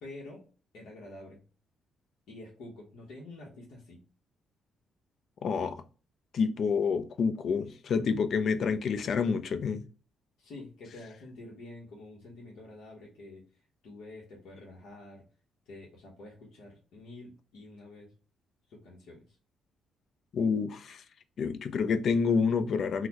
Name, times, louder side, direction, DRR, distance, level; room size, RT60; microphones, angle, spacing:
voice 1, 0.0-0.5 0.7-1.4 2.3-4.0 10.4-13.4 13.8-15.2 15.7-18.1 18.7-19.4, left 2 dB, 75° left, 0.9 m, -48 dB
voice 2, 5.4-5.8 6.3-9.8 20.3-21.0 21.4-23.1, left 5 dB, 60° left, 0.4 m, -28 dB
3.9 x 2.1 x 2.8 m
cardioid pair, 90°, 0 cm